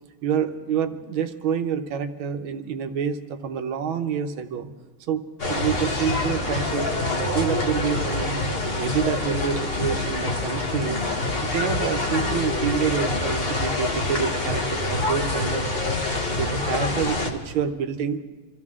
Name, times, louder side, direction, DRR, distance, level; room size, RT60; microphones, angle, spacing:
voice 1, 0.2-4.7 5.1-11.0 11.4-15.9 16.4-18.2, right 7 dB, 85° right, 7 dB, 1.7 m, -28 dB
sound 1, 5.4-17.3, left 2 dB, 35° left, 1.3 m, -26 dB
26.0 x 14.5 x 3.6 m, 1.3 s
omnidirectional pair, 2.2 m